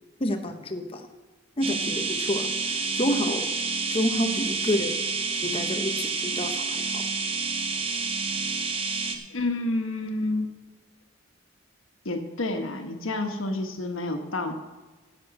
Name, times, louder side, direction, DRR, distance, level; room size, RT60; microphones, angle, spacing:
voice 1, 0.2-1.1 1.6-3.5 3.9-5.0 5.4-7.1, left 1 dB, 30° left, 5 dB, 0.8 m, -29 dB
sound 1, 1.6-9.2, right 4 dB, 25° right, 1.0 m, -29 dB
voice 2, 9.3-10.5 12.0-14.5, left 2 dB, 85° left, 6 dB, 1.3 m, -29 dB
10.5 x 6.4 x 7.4 m, 1.3 s
head